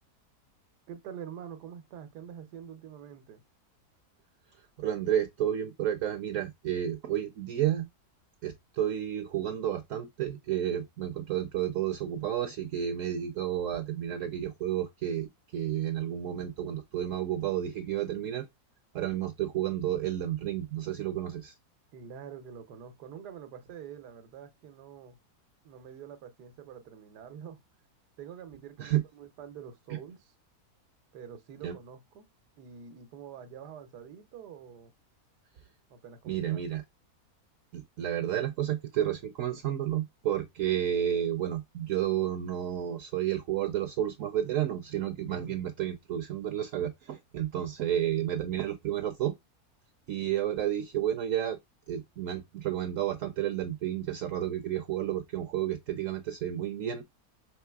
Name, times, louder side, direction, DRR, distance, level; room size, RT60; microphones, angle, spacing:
voice 1, 0.9-3.4 21.9-25.2 25.6-27.6 28.2-30.3 31.1-32.3 32.6-34.9 35.9-36.6 45.3-45.6, right 8 dB, 90° right, 1.4 m, -46 dB
voice 2, 4.8-7.9 8.4-18.5 18.9-21.5 28.8-29.0 29.9-30.0 31.6-31.7 36.3-36.8 37.7-49.3 50.1-51.6 51.9-57.0, right 11 dB, 65° right, 0.8 m, -31 dB
5.6 x 3.1 x 2.3 m
omnidirectional pair, 1.7 m